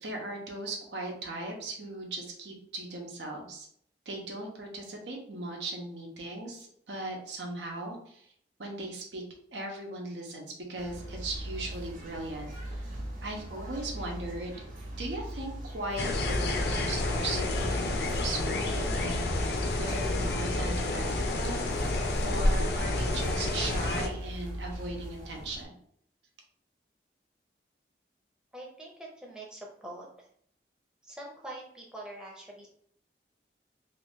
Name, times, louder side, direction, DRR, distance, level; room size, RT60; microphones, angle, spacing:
voice 1, 0.0-3.7 4.1-8.2 8.6-9.2 9.5-12.9 13.2-14.6 15.0-25.7, right 2 dB, 90° right, 1 dB, 0.9 m, -38 dB
sound 1, 10.8-25.6, right 1 dB, 45° right, 0.7 m, -40 dB
sound 2, 16.0-24.1, left 2 dB, 65° left, 0.5 m, -29 dB
voice 2, 28.5-30.1 31.0-32.7, right 1 dB, 5° right, -2 dB, 0.6 m, -44 dB
2.9 x 2.5 x 3.6 m, 0.65 s
head